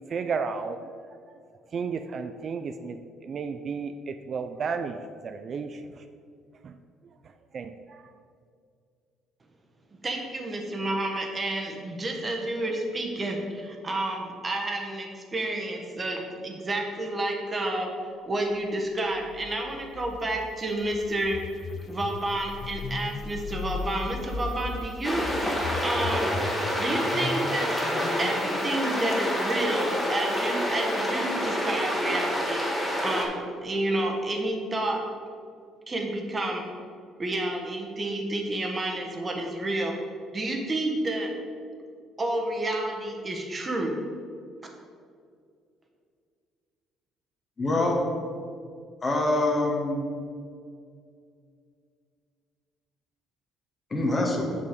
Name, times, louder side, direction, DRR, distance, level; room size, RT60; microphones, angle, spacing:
voice 1, 0.1-0.9 1.7-5.0 5.2-6.0 6.6-6.8 7.5-8.1, right 5 dB, 50° right, 8 dB, 0.3 m, -33 dB
voice 2, 10.0-17.9 18.3-21.4 21.9-26.4 26.8-27.8 28.2-35.0 35.9-36.6 37.2-39.9 40.3-41.3 42.2-44.0, right 1 dB, 30° right, 1 dB, 1.3 m, -30 dB
sound 1, 19.0-31.1, left 5 dB, 50° left, 0.4 m, -38 dB
sound 2, 25.0-33.3, equal, 10° left, 1.7 m, -28 dB
voice 3, 47.6-48.0 49.0-50.0 53.9-54.5, left 2 dB, 30° left, 0 dB, 1.5 m, -25 dB
6.0 x 5.6 x 5.2 m, 2.3 s
cardioid pair, 85°, 0 cm